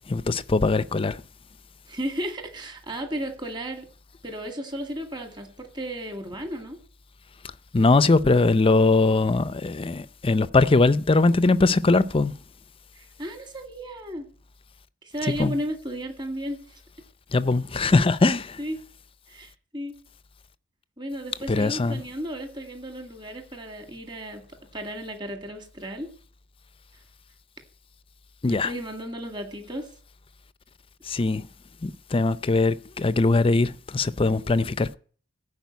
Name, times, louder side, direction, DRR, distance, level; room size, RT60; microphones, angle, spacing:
voice 1, 0.1-1.2 7.7-12.3 15.4-15.5 17.3-18.6 21.5-22.0 28.4-28.7 31.1-31.5 31.8-34.9, left 3 dB, 30° left, 0.5 m, -21 dB
voice 2, 1.9-3.9 4.2-6.8 13.2-14.3 15.0-16.6 18.6-18.8 19.3-20.0 21.0-24.4 24.7-26.1 28.5-29.9, equal, 25° right, 2.0 m, -34 dB
15.0 x 5.0 x 9.4 m
head